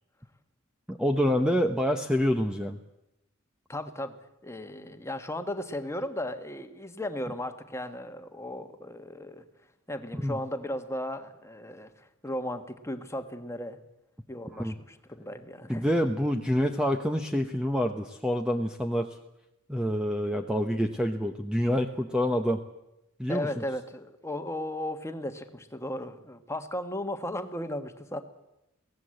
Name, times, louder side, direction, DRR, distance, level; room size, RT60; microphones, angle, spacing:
voice 1, 0.9-2.8 10.1-10.4 14.6-14.7 15.7-19.1 19.7-22.6 23.2-23.6, equal, 5° right, 5 dB, 0.9 m, -27 dB
voice 2, 3.7-4.1 4.4-9.4 9.9-13.8 14.3-15.8 23.3-28.2, left 1 dB, 15° left, 8 dB, 1.5 m, -36 dB
23.0 x 17.5 x 7.8 m, 0.89 s
head